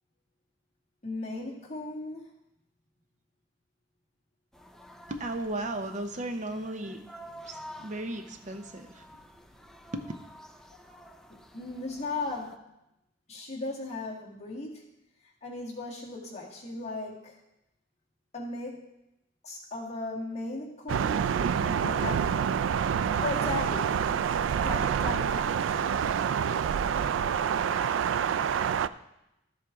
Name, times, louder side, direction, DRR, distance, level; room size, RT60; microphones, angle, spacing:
voice 1, 1.0-2.3 10.9-11.0 11.3-12.7 13.3-14.9 15.4-17.4 18.3-18.9 19.4-22.6 23.2-24.0 24.6-25.6, left 3 dB, 35° left, -3 dB, 1.8 m, -37 dB
sound 1, 4.5-12.6, equal, 5° left, 0.4 m, -50 dB
voice 2, 5.1-7.0 7.4-9.1 9.9-10.0, right 1 dB, 40° right, 6 dB, 0.7 m, -35 dB
Thunder, 20.9-28.9, right 7 dB, 75° right, 0.3 m, -27 dB
13.0 x 7.6 x 3.5 m, 0.88 s
head